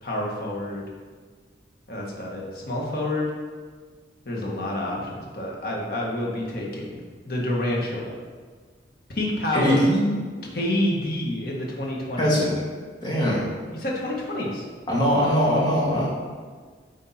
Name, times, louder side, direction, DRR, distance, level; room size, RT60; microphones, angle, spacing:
voice 1, 0.0-0.8 1.9-3.3 4.2-7.0 7.2-8.2 9.1-9.8 10.5-12.3 13.7-14.6, left 1 dB, 55° left, -2 dB, 1.3 m, -28 dB
voice 2, 9.5-10.1 12.2-12.5 13.0-13.4 14.9-16.1, equal, 25° left, -6 dB, 2.0 m, -21 dB
9.6 x 3.6 x 4.2 m, 1.5 s
head